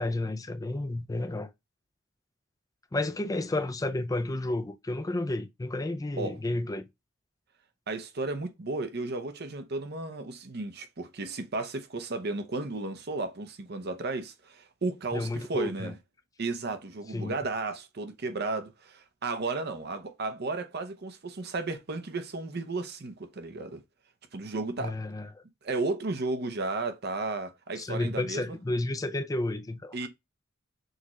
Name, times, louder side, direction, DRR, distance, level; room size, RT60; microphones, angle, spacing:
voice 1, 0.0-1.5 2.9-6.9 15.1-15.9 17.1-17.4 24.8-25.3 27.8-30.1, left 2 dB, 20° left, 0.4 m, -31 dB
voice 2, 7.9-16.0 16.4-23.8 24.3-25.0 25.6-28.6 29.9-30.1, right 3 dB, 55° right, 0.8 m, -34 dB
6.4 x 2.4 x 3.1 m
head